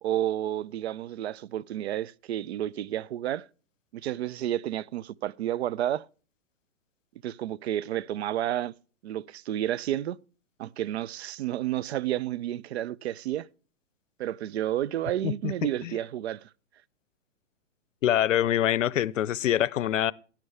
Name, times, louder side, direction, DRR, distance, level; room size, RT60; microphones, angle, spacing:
voice 1, 0.0-3.5 3.9-6.1 7.2-8.7 9.0-10.2 10.6-13.5 14.2-16.5, right 12 dB, 60° right, 0.6 m, -31 dB
voice 2, 18.0-20.1, left 11 dB, 85° left, 0.7 m, -24 dB
12.0 x 11.0 x 3.3 m
hypercardioid pair, 155°, 37 cm